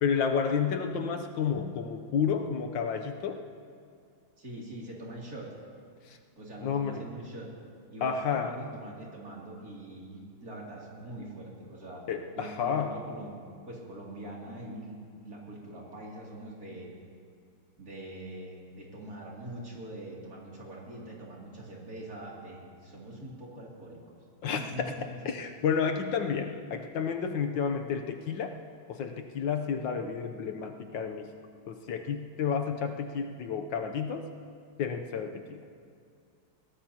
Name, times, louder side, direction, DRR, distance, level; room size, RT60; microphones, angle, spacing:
voice 1, 0.0-3.4 6.0-6.2 6.6-7.0 8.0-8.6 12.1-12.9 24.4-24.6 25.2-28.6 28.9-31.3 31.7-34.3 34.8-35.7, left 6 dB, 70° left, 5 dB, 1.4 m, -31 dB
voice 2, 4.4-5.5 6.4-7.5 7.9-12.1 12.3-14.9 15.2-16.9 17.8-24.1 24.5-25.0, right 1 dB, 45° right, -4 dB, 3.1 m, -43 dB
22.0 x 17.5 x 2.8 m, 2.3 s
omnidirectional pair, 2.2 m